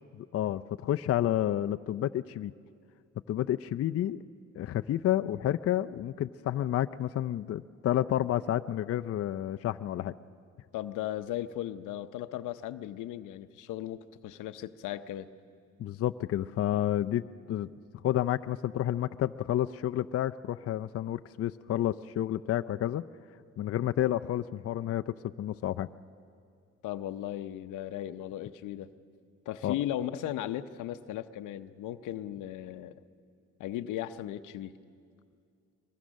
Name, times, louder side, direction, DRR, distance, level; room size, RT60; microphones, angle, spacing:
voice 1, 0.2-2.5 3.3-4.2 4.6-10.1 15.8-17.7 18.0-23.0 23.6-25.9 29.6-29.7, left 12 dB, 50° left, 10 dB, 0.5 m, -30 dB
voice 2, 10.7-15.3 26.8-28.9 29.5-32.9 33.6-34.7, left 12 dB, 90° left, 11 dB, 0.7 m, -36 dB
23.5 x 22.0 x 6.4 m, 2.3 s
cardioid pair, 90°, 30 cm